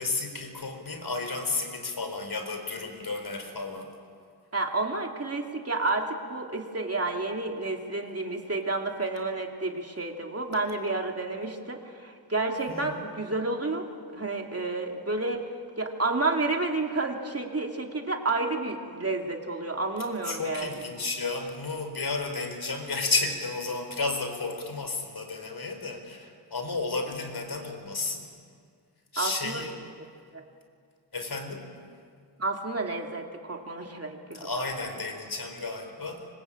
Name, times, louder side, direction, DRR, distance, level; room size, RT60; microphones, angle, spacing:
voice 1, 0.0-3.9 12.7-13.0 20.2-28.3 29.1-29.7 31.1-31.7 34.3-36.2, left 3 dB, 65° left, 5 dB, 4.5 m, -32 dB
voice 2, 4.5-13.9 14.1-15.5 15.8-20.9 29.2-29.6 30.3-30.4 32.4-34.5, right 3 dB, 35° right, 2 dB, 2.9 m, -30 dB
27.0 x 24.5 x 8.8 m, 2.1 s
wide cardioid pair, 95°, 41 cm